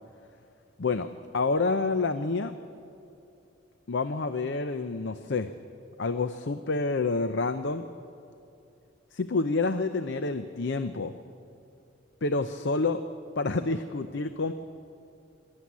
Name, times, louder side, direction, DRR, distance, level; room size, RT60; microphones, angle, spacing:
voice 1, 0.8-2.5 3.9-5.5 6.0-7.8 9.1-11.1 12.2-13.0 13.4-14.5, left 3 dB, 60° left, 10 dB, 0.6 m, -28 dB
21.0 x 13.0 x 9.5 m, 2.7 s
head